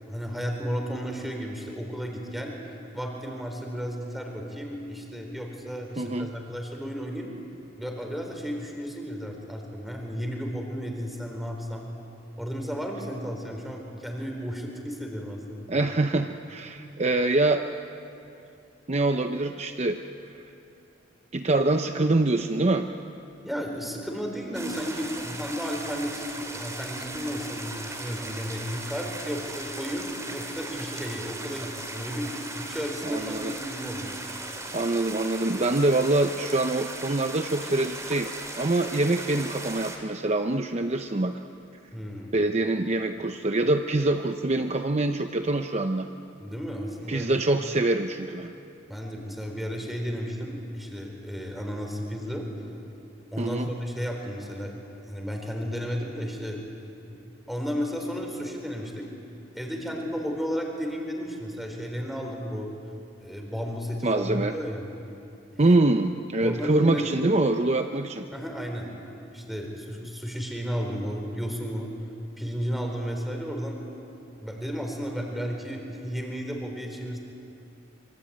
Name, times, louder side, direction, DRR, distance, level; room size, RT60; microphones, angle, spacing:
voice 1, 0.1-2.5 2.9-7.3 7.8-11.9 12.4-15.7 23.4-34.1 41.9-42.3 46.4-47.3 48.9-52.4 53.3-54.8 55.0-56.6 57.1-57.2 57.5-59.1 59.5-62.7 63.2-64.9 65.5-65.6 66.4-67.3 68.3-69.0 69.3-71.9 72.4-73.8 74.4-77.2, equal, ahead, 1 dB, 4.1 m, -33 dB
voice 2, 6.0-6.3 15.7-17.6 18.9-20.0 21.3-22.9 33.0-33.5 34.3-34.4 34.7-41.3 42.3-46.1 47.1-48.5 53.4-53.7 64.0-64.5 65.6-68.3, right 2 dB, 35° right, 6 dB, 0.7 m, -25 dB
sound 1, 24.5-40.0, right 2 dB, 15° right, 3.1 m, -38 dB
26.0 x 24.5 x 8.8 m, 2.7 s
head